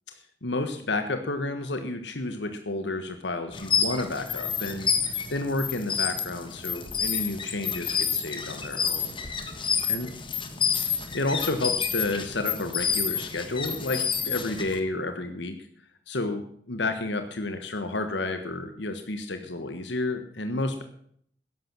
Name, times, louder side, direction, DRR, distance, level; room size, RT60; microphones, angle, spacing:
voice 1, 0.4-9.1 9.9-10.1 10.9-15.6 16.1-20.8, left 2 dB, 75° left, 7 dB, 1.4 m, -31 dB
sound 1, 3.5-14.8, left 6 dB, 25° left, 1.5 m, -29 dB
14.0 x 11.0 x 6.1 m, 0.63 s
head